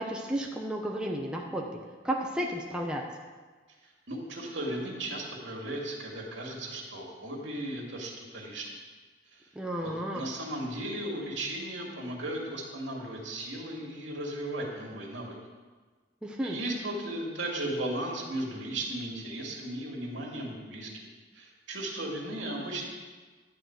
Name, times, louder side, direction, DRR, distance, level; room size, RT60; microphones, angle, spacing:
voice 1, 0.0-1.7 2.0-3.0 9.5-10.2 16.2-16.6, right 1 dB, 5° right, -1 dB, 0.8 m, -32 dB
voice 2, 4.1-8.7 9.3-9.4 9.8-15.3 16.4-22.8, right 1 dB, 75° right, -1 dB, 2.3 m, -36 dB
11.5 x 4.2 x 7.9 m, 1.4 s
head